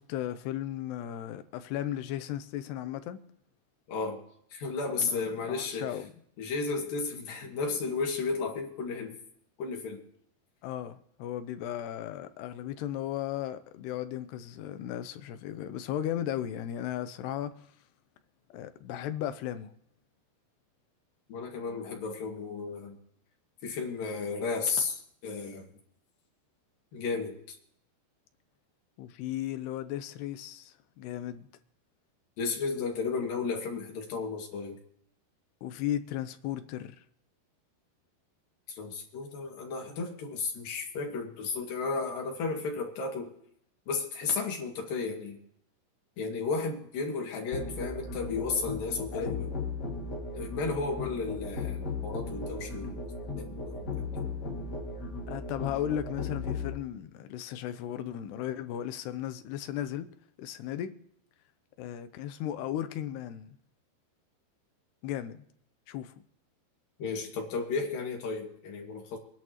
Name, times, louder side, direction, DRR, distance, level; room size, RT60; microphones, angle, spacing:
voice 1, 0.0-3.2 5.0-6.1 10.6-17.5 18.5-19.7 29.0-31.5 35.6-37.0 49.1-49.4 55.3-60.1 60.4-60.9 61.8-63.6 65.0-65.4 65.9-66.1, left 11 dB, 80° left, 2.9 m, -36 dB
voice 2, 3.9-4.2 4.5-6.0 6.4-9.2 9.6-10.0 21.3-23.0 23.6-25.7 26.9-27.6 32.4-34.8 38.7-43.3 43.9-45.4 46.2-49.5 50.3-53.0 53.4-54.2 67.0-69.2, left 4 dB, 60° left, 3.7 m, -33 dB
Musical instrument, 47.5-56.7, left 3 dB, 35° left, 2.0 m, -36 dB
24.5 x 11.0 x 3.0 m
omnidirectional pair, 4.8 m